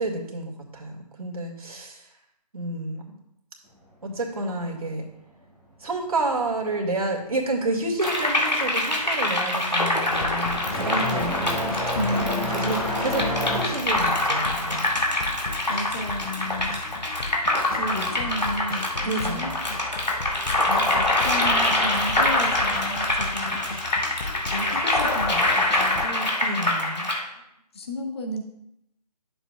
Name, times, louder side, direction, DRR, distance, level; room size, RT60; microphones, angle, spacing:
voice 1, 0.0-2.0 2.5-3.0 4.0-5.0 5.8-11.6 12.5-13.2 13.5-14.8 19.1-19.4 26.4-27.1, right 2 dB, 60° right, 0 dB, 2.1 m, -29 dB
sound 1, 8.0-27.2, left 1 dB, 85° left, 2.2 m, -25 dB
sound 2, 8.1-8.4 8.7-17.0 17.3-18.3 19.3-19.4 20.3-20.4 22.1-22.2, left 1 dB, 5° left, 1.3 m, -30 dB
sound 3, 10.1-26.1, left 3 dB, 55° left, 0.8 m, -37 dB
voice 2, 12.0-12.9 15.7-16.8 17.8-19.6 20.7-23.6 24.5-26.3 27.3-27.4 27.7-28.4, left 1 dB, 40° left, 3 dB, 1.2 m, -33 dB
12.0 x 7.1 x 2.4 m, 0.80 s
figure-of-eight pair, 150°, 21 cm